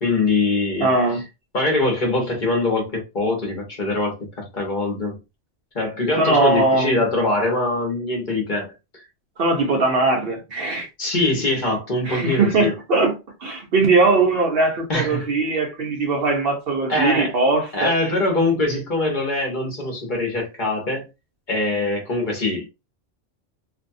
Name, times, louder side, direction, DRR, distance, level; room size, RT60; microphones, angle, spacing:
voice 1, 0.0-0.9 1.5-5.2 5.7-8.7 11.0-12.7 14.9-15.3 16.9-17.3 17.7-21.1 21.5-22.7, left 2 dB, 45° left, 0.9 m, -23 dB
voice 2, 0.8-1.2 6.2-7.0 9.4-10.9 12.0-17.9, right 3 dB, 60° right, 0.9 m, -20 dB
2.6 x 2.2 x 2.5 m
omnidirectional pair, 1.2 m